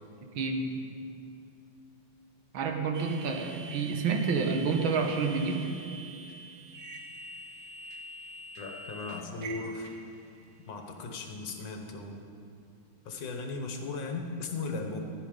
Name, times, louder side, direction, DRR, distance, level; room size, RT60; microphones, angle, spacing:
voice 1, 0.4-0.9 2.5-5.7, right 4 dB, 80° right, 4 dB, 1.8 m, -29 dB
sound 1, 2.9-10.5, right 2 dB, 65° right, 1.0 m, -45 dB
voice 2, 8.6-9.9 10.7-12.3 13.1-15.0, left 3 dB, 65° left, 3 dB, 1.8 m, -37 dB
14.5 x 10.0 x 5.2 m, 2.5 s
omnidirectional pair, 2.2 m